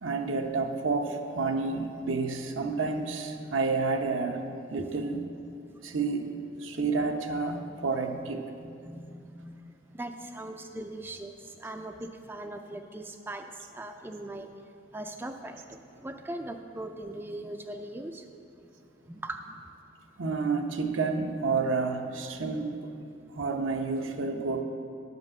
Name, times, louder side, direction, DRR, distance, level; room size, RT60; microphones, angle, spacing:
voice 1, 0.0-5.3 5.8-8.5 20.2-23.0 23.3-24.6, right 4 dB, 80° right, 5 dB, 0.7 m, -30 dB
voice 2, 8.6-14.5 14.9-18.3 19.1-19.6, right 1 dB, 10° right, 5 dB, 0.3 m, -40 dB
10.5 x 5.2 x 7.3 m, 2.5 s
head